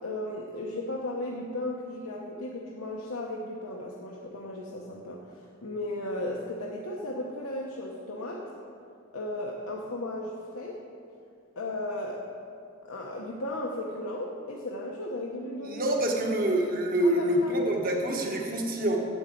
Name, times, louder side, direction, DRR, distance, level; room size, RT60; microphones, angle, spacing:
voice 1, 0.0-8.5 9.1-10.8 11.6-12.2 12.8-15.9 17.0-17.5, left 1 dB, 80° left, -2 dB, 1.1 m, -35 dB
voice 2, 15.6-19.0, right 1 dB, 45° right, 1 dB, 1.5 m, -26 dB
9.1 x 8.0 x 7.6 m, 2.5 s
head